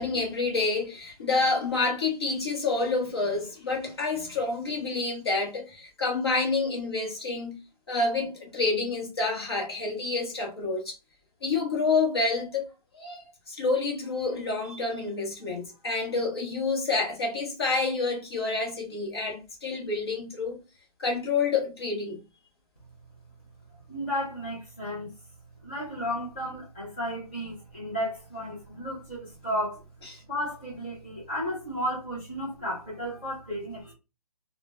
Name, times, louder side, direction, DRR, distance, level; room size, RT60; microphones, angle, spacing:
voice 1, 0.0-7.6 7.9-11.0 11.4-12.7 12.9-13.2 13.5-20.6 21.0-22.2 30.0-30.2, left 3 dB, 40° left, 0.8 m, -28 dB
voice 2, 23.9-25.1 25.6-29.8 30.3-33.9, equal, 15° left, 0.4 m, -33 dB
2.1 x 2.0 x 2.8 m
hypercardioid pair, 170°, 20 cm